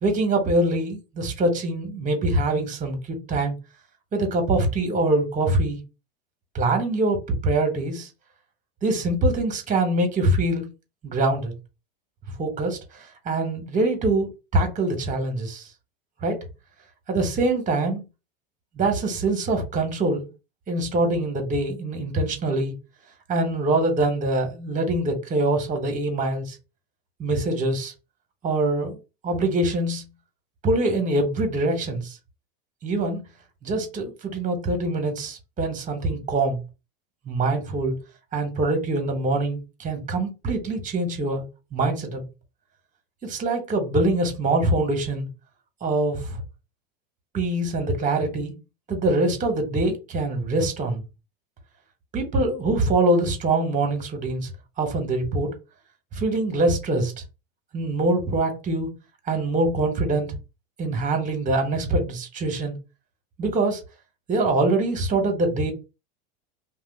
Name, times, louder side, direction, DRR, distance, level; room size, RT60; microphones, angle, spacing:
voice 1, 0.0-3.5 4.1-5.8 6.5-8.1 8.8-10.6 11.0-11.5 12.4-12.8 13.2-15.6 16.2-16.4 17.1-18.0 18.8-20.3 20.7-22.7 23.3-26.4 27.2-27.9 28.4-29.0 29.2-30.0 30.6-32.1 32.8-33.2 33.6-36.6 37.3-37.9 38.3-41.4 41.7-42.3 43.2-45.3 45.8-46.4 47.3-48.5 48.9-51.0 52.1-54.5 54.8-55.5 56.1-57.1 57.7-58.9 59.3-60.3 60.8-62.8 63.4-63.8 64.3-65.7, right 2 dB, 25° right, 1.3 m, -24 dB
2.7 x 2.3 x 3.9 m
supercardioid pair, 110°, 33 cm